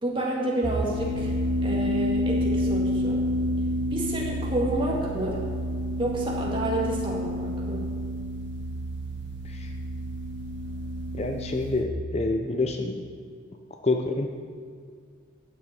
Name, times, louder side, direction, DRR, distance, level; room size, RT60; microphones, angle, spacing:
voice 1, 0.0-3.2 3.9-5.4 6.0-7.8, right 1 dB, 25° right, -2 dB, 2.1 m, -29 dB
sound 1, 0.6-11.8, equal, 55° right, 1.6 m, -29 dB
voice 2, 11.1-13.1 13.8-14.3, left 2 dB, 30° left, 4 dB, 0.5 m, -27 dB
13.5 x 9.4 x 4.4 m, 2.1 s
head